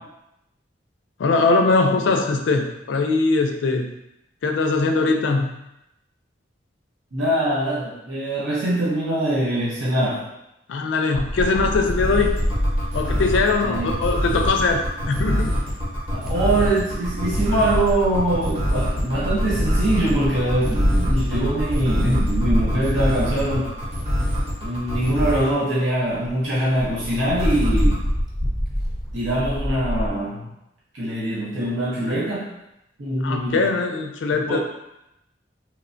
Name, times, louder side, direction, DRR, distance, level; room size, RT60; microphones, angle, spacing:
voice 1, 1.2-3.8 4.4-5.5 10.7-12.4 12.9-15.6 33.2-34.6, left 3 dB, 85° left, 4 dB, 0.4 m, -21 dB
voice 2, 7.1-10.2 11.4-11.5 13.6-14.0 16.1-23.7 24.6-28.0 29.1-30.5 30.9-32.5 33.0-33.7 34.5-34.6, right 1 dB, 80° right, -8 dB, 0.7 m, -23 dB
sound 1, 11.1-25.5 27.4-28.0, equal, 30° right, 0.8 m, -25 dB
Wind, 11.2-14.8 15.9-16.4 17.1-24.1 24.7-24.8 25.0-25.1 25.4-25.5 25.8-25.9 26.2-26.3 26.7-30.1, equal, ahead, 0.4 m, -26 dB
3.1 x 2.1 x 2.5 m, 0.86 s
head